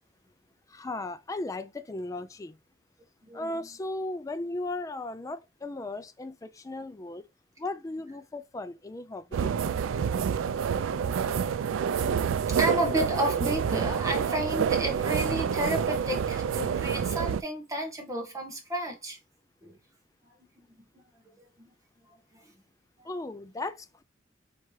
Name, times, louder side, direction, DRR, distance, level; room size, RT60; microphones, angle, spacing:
voice 1, 0.7-2.5 3.3-7.2 7.6-9.5 23.0-24.0, left 2 dB, 15° left, 0.3 m, -36 dB
sound 1, 9.3-17.4, right 7 dB, 85° right, 0.3 m, -28 dB
voice 2, 10.9-19.2 19.6-19.8 20.6-20.7 21.6-21.7 22.3-22.4, right 1 dB, 15° right, 1.2 m, -32 dB
4.3 x 3.4 x 3.2 m
head